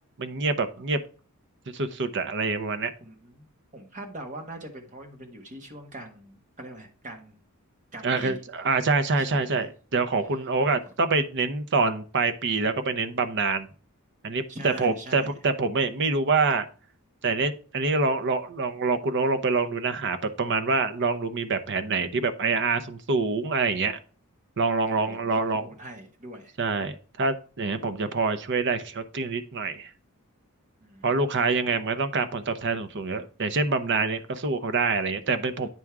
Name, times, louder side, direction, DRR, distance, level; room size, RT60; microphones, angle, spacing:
voice 1, 0.2-1.0 1.7-2.9 8.0-13.7 14.2-16.7 17.2-24.0 24.6-25.7 26.6-29.9 31.0-35.7, right 4 dB, 55° right, 11 dB, 0.7 m, -26 dB
voice 2, 3.0-3.5 3.7-7.4 7.9-8.4 9.2-9.7 14.5-15.3 24.9-26.5 30.8-31.3, right 1 dB, 35° right, 2 dB, 1.5 m, -42 dB
9.2 x 3.6 x 4.6 m, 0.39 s
head